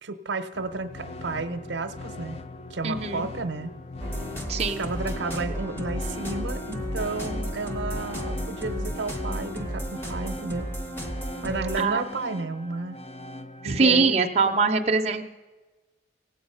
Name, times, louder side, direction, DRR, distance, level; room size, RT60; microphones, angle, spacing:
voice 1, 0.0-2.4 2.7-3.7 4.8-10.7 11.4-13.0 13.6-14.6, right 3 dB, 75° right, 11 dB, 0.7 m, -32 dB
sound 1, 0.5-14.1, left 1 dB, 35° left, 0.3 m, -41 dB
voice 2, 2.8-3.3 4.5-4.9 11.8-12.1 13.6-15.2, right 4 dB, 35° right, 3 dB, 0.5 m, -23 dB
sound 2, 4.0-11.8, equal, 10° left, 0.8 m, -33 dB
sound 3, 6.0-6.5 6.9-8.1 8.5-8.6 9.0-9.3 9.6-10.4, left 2 dB, 65° left, 2.0 m, -48 dB
17.0 x 7.9 x 5.5 m, 1.2 s
head